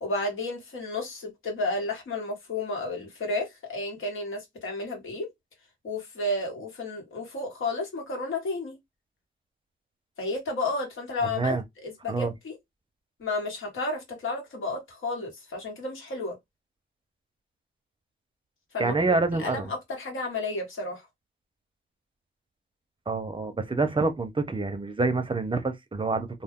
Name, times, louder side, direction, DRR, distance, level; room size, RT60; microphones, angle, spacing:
voice 1, 0.0-5.3 5.8-8.8 10.2-12.6 13.2-16.4 18.7-18.9 19.3-21.1, left 2 dB, 80° left, 1.2 m, -32 dB
voice 2, 18.8-19.7 23.1-26.3, right 3 dB, 25° right, 0.5 m, -27 dB
2.2 x 2.2 x 3.5 m
wide cardioid pair, 110°, 21 cm